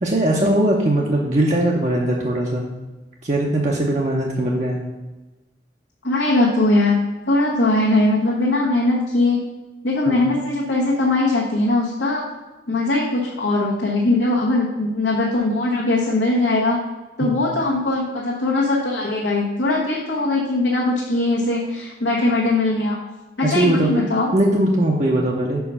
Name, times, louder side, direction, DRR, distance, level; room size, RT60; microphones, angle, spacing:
voice 1, 0.0-2.6 3.2-4.8 10.1-10.3 17.2-17.3 23.4-23.9 24.3-25.6, right 1 dB, 40° right, -2 dB, 0.7 m, -20 dB
voice 2, 6.0-9.5 9.8-12.2 12.7-16.8 17.2-23.0 23.4-24.3, left 2 dB, 80° left, -4 dB, 1.1 m, -20 dB
5.5 x 4.6 x 5.5 m, 1.1 s
head